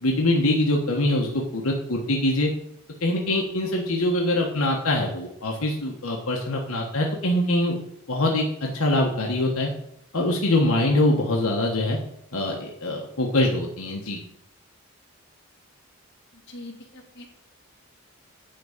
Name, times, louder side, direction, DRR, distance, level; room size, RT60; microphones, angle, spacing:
voice 1, 0.0-2.5 3.0-7.8 8.1-9.7 10.1-12.0 12.3-14.2, left 1 dB, 85° left, -1 dB, 1.4 m, -23 dB
voice 2, 16.5-17.3, left 2 dB, 55° left, -1 dB, 2.6 m, -42 dB
10.5 x 3.9 x 7.3 m, 0.75 s
head